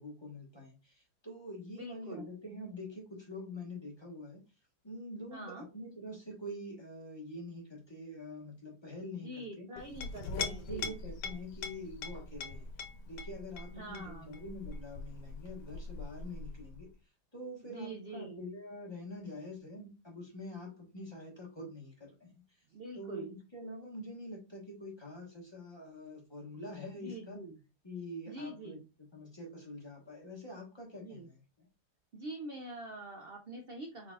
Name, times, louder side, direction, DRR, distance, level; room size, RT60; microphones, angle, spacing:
voice 1, 0.0-4.4 4.8-9.7 10.3-12.7 13.1-16.9 17.3-22.4 23.0-27.4 27.8-28.8 29.1-31.4, left 1 dB, 15° left, -1 dB, 1.3 m, -45 dB
voice 2, 1.7-2.3 5.3-5.7 9.1-10.9 13.7-14.4 17.7-18.4 22.7-23.3 26.9-27.6 28.3-28.9 31.0-31.3 32.1-34.1, right 1 dB, 70° right, 3 dB, 0.5 m, -45 dB
Chink clink, 9.8-16.9, left 4 dB, 85° left, 1.3 m, -42 dB
4.9 x 3.9 x 2.4 m, 0.30 s
omnidirectional pair, 1.8 m